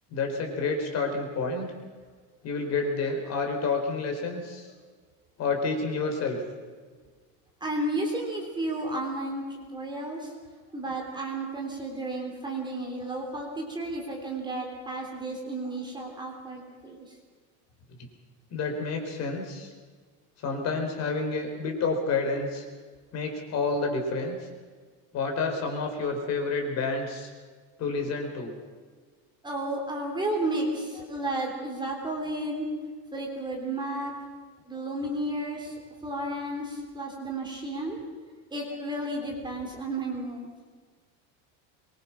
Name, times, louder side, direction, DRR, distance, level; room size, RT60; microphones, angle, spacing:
voice 1, 0.1-1.7 2.4-4.7 5.4-6.4 18.5-19.7 20.4-22.6 23.1-24.4 25.1-27.3 27.8-28.5, left 4 dB, 40° left, 3 dB, 4.3 m, -29 dB
voice 2, 7.6-10.3 10.7-17.1 29.4-32.7 33.1-34.1 34.7-35.8 36.0-38.0 38.5-40.5, right 1 dB, 10° right, 0 dB, 3.5 m, -32 dB
24.0 x 22.5 x 6.0 m, 1.5 s
cardioid pair, 175°, 41 cm